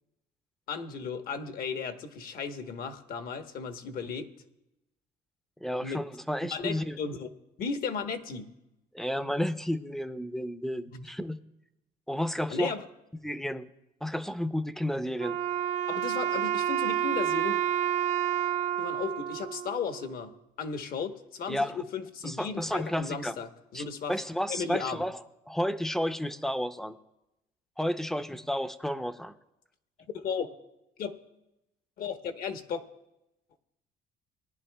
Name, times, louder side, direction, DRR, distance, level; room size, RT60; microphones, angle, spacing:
voice 1, 0.7-4.3 5.8-6.0 6.5-7.3 7.6-8.5 10.9-11.1 12.5-12.8 15.9-17.6 18.8-24.2 24.5-25.0 30.1-30.5 31.0-31.1 32.0-32.9, left 5 dB, 60° left, 8 dB, 1.0 m, -35 dB
voice 2, 5.6-7.0 8.9-11.4 12.1-12.7 13.2-13.7 14.0-15.4 21.5-21.8 22.2-23.3 23.7-25.1 25.5-26.9 27.8-29.3, equal, ahead, 12 dB, 0.5 m, -31 dB
Wind instrument woodwind instrument, 15.2-20.4, right 10 dB, 45° right, 0.6 m, -30 dB
20.0 x 10.5 x 2.2 m, 0.90 s
cardioid pair, 110°, 17 cm